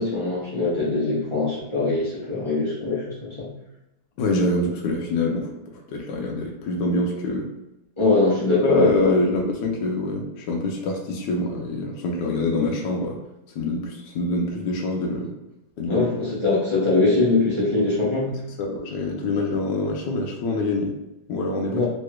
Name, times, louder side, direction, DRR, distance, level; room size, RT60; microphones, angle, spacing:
voice 1, 0.0-3.5 8.0-9.1 15.9-18.4 21.7-21.9, left 3 dB, 45° left, -8 dB, 0.3 m, -22 dB
voice 2, 4.2-7.5 8.6-13.2 13.5-15.3 15.8-16.1 18.6-20.9 21.3-21.8, left 2 dB, 75° left, 0 dB, 1.1 m, -25 dB
3.3 x 3.1 x 2.2 m, 0.91 s
omnidirectional pair, 2.1 m